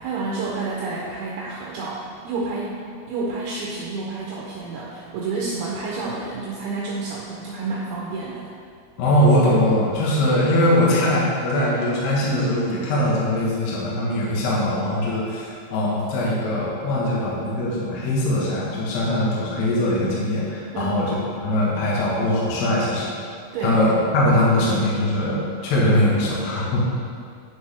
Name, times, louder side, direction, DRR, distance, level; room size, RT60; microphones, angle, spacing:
voice 1, 0.0-2.8 3.1-8.5 20.7-21.0 23.5-23.8, right 3 dB, 75° right, -4 dB, 2.6 m, -29 dB
voice 2, 9.0-21.1 21.4-23.1 23.6-26.8, left 1 dB, 55° left, -5 dB, 2.2 m, -21 dB
9.5 x 6.4 x 3.4 m, 2.2 s
omnidirectional pair, 4.8 m